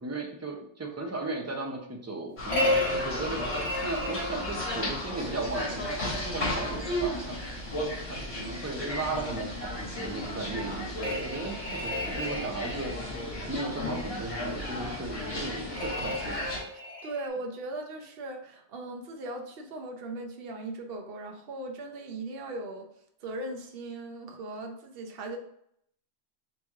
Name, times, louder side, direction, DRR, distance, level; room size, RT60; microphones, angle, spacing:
voice 1, 0.0-7.4 7.8-16.5, right 3 dB, 20° right, 1 dB, 0.5 m, -36 dB
sound 1, 2.4-16.6, left 1 dB, 70° left, 2.1 m, -34 dB
sound 2, 2.5-5.0 11.0-13.1 15.8-17.3, left 1 dB, 35° left, 1.2 m, -33 dB
voice 2, 17.0-22.9 23.2-25.4, right 2 dB, 60° right, 2 dB, 0.9 m, -38 dB
4.1 x 3.1 x 3.6 m, 0.72 s
omnidirectional pair, 1.1 m